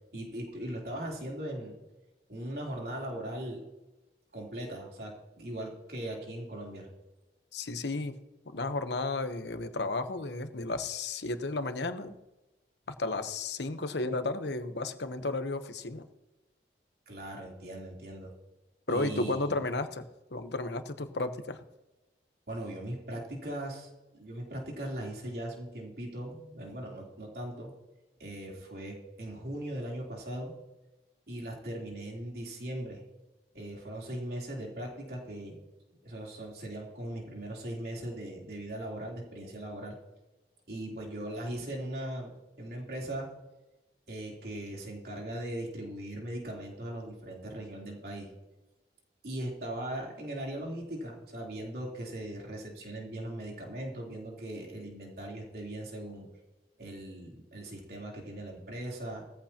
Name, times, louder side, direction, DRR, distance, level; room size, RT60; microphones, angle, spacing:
voice 1, 0.1-1.8 2.3-3.6 4.3-6.9 17.1-18.3 18.9-19.6 22.5-27.7 28.2-30.5 31.3-33.0 33.5-35.6 36.0-39.9 40.7-42.3 42.6-43.3 44.1-48.3 49.2-56.3 56.8-59.2, right 1 dB, 60° right, -2 dB, 3.5 m, -39 dB
voice 2, 7.5-8.1 8.5-12.1 13.0-16.1 18.9-20.0 20.3-21.6, left 2 dB, 80° left, 9 dB, 1.0 m, -33 dB
19.0 x 14.5 x 2.9 m, 1.0 s
head